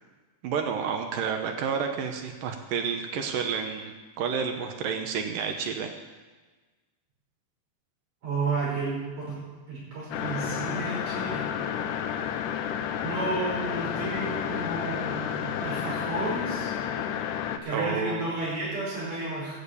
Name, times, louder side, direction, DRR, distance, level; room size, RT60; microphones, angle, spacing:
voice 1, 0.4-5.9 17.7-18.3, right 6 dB, 70° right, 4 dB, 2.4 m, -30 dB
voice 2, 8.2-9.0 9.3-9.4 9.7-11.9 13.0-16.7 17.6-19.6, right 2 dB, 55° right, -7 dB, 7.2 m, -32 dB
sound 1, 10.1-17.6, left 8 dB, 80° left, 1.9 m, -31 dB
13.5 x 7.3 x 8.4 m, 1.3 s
omnidirectional pair, 4.5 m